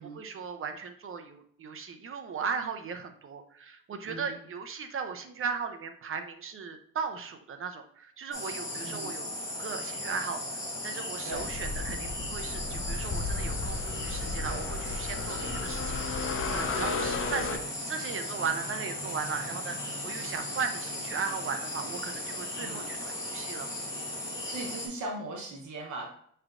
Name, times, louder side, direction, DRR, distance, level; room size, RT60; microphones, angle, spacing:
voice 1, 0.0-9.3 9.6-19.7 20.0-23.7, right 5 dB, 45° right, 7 dB, 0.7 m, -37 dB
voice 2, 4.1-4.4 8.8-9.2 9.5-9.6 11.2-11.6 14.4-14.7 15.3-15.6 16.8-17.3 22.6-22.9 24.5-26.1, right 2 dB, 75° right, 0 dB, 1.0 m, -40 dB
sound 1, 8.3-24.9, left 1 dB, 10° left, 1.5 m, -37 dB
sound 2, 11.3-17.6, left 4 dB, 45° left, 0.6 m, -34 dB
5.9 x 3.3 x 2.5 m, 0.63 s
cardioid pair, 90°, 30 cm